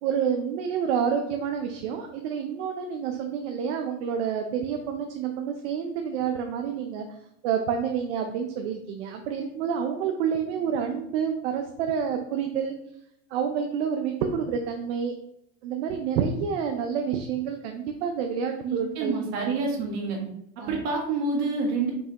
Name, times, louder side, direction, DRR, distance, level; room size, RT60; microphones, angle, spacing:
voice 1, 0.0-7.1 7.4-12.7 13.3-15.1 15.6-19.5 20.6-20.8, right 7 dB, 60° right, 4 dB, 0.6 m, -28 dB
voice 2, 18.6-20.2 20.6-21.9, right 3 dB, 45° right, -1 dB, 1.5 m, -28 dB
5.4 x 3.2 x 2.9 m, 0.77 s
supercardioid pair, 145°, 39 cm